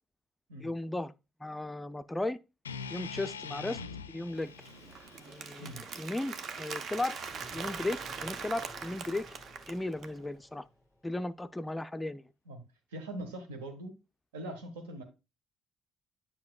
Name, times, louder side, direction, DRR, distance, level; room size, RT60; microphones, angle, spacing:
voice 1, 0.6-1.1 1.4-2.4 2.9-3.8 4.1-4.5 5.2-7.2 7.5-9.3 9.7-10.6 11.0-12.2, left 2 dB, 10° left, 0.4 m, -35 dB
sound 1, 2.6-6.8, left 6 dB, 85° left, 0.3 m, -44 dB
Applause, 4.4-10.2, right 6 dB, 50° right, 0.7 m, -42 dB
sound 2, 7.3-11.0, left 1 dB, 5° right, 0.9 m, -54 dB
voice 2, 12.9-13.9 14.3-15.0, right 1 dB, 75° right, 1.3 m, -41 dB
9.4 x 5.3 x 2.3 m
figure-of-eight pair, 45°, 0 cm